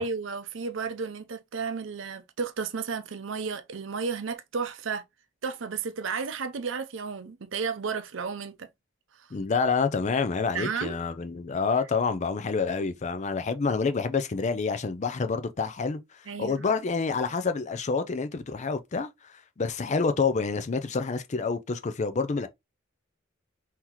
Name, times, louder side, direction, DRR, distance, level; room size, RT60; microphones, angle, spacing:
voice 1, 0.0-5.0 5.4-8.7 10.5-11.0 16.3-16.6, right 5 dB, 70° right, 0.6 m, -33 dB
voice 2, 9.3-22.5, left 4 dB, 35° left, 0.4 m, -28 dB
3.8 x 2.8 x 2.9 m
head